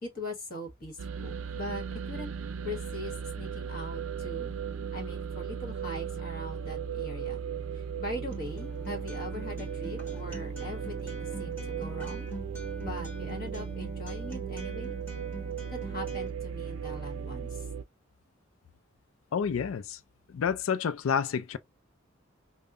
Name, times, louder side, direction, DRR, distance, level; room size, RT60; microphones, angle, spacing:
voice 1, 0.0-2.3 2.6-4.6 4.9-7.4 7.7-12.3 12.8-15.0 15.7-17.7, left 1 dB, 45° left, 1.3 m, -41 dB
sound 1, 1.0-17.8, right 7 dB, 80° right, 0.5 m, -36 dB
Acoustic guitar, 8.3-16.3, right 1 dB, 10° left, 1.4 m, -45 dB
voice 2, 19.3-20.0 20.3-21.6, left 7 dB, 80° left, 0.4 m, -29 dB
5.3 x 2.1 x 2.4 m
head